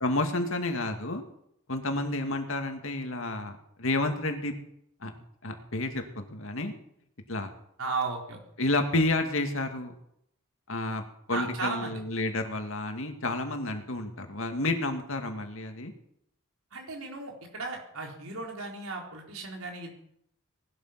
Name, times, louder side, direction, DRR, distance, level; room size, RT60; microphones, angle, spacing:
voice 1, 0.0-1.2 1.7-4.5 5.0-5.1 5.4-6.7 7.3-7.5 8.6-9.9 10.7-11.0 11.3-15.9, left 2 dB, 65° left, 5 dB, 2.3 m, -30 dB
voice 2, 7.8-8.4 11.3-12.0 16.7-19.9, right 4 dB, 75° right, 1 dB, 4.1 m, -35 dB
19.0 x 12.0 x 6.0 m, 0.75 s
head